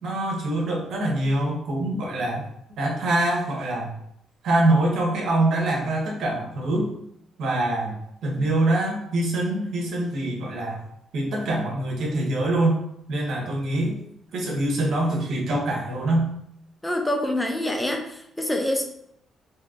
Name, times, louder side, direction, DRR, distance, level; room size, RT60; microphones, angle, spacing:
voice 1, 0.0-2.4 2.8-3.9 4.4-6.9 7.4-7.9 8.2-10.8 11.1-12.8 13.1-13.9 14.3-16.3, right 1 dB, 70° right, -1 dB, 1.2 m, -24 dB
voice 2, 16.8-18.8, left 1 dB, 10° left, 3 dB, 0.6 m, -26 dB
4.3 x 2.9 x 2.5 m, 0.73 s
cardioid pair, 90°, 0 cm